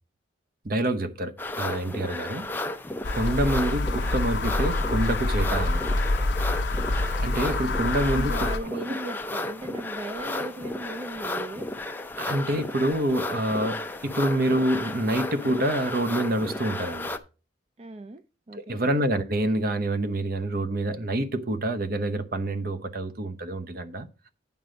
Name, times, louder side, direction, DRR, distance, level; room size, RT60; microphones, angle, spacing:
voice 1, 0.6-2.5 3.1-5.8 7.2-8.5 12.2-17.1 18.5-24.1, right 1 dB, 55° right, 0.9 m, -27 dB
sound 1, 1.4-17.2, left 2 dB, 10° left, 0.6 m, -33 dB
sound 2, 3.0-8.6, left 2 dB, 65° left, 0.6 m, -26 dB
voice 2, 8.1-11.7 17.8-18.8, right 2 dB, 35° right, 0.5 m, -37 dB
9.5 x 5.4 x 5.1 m
head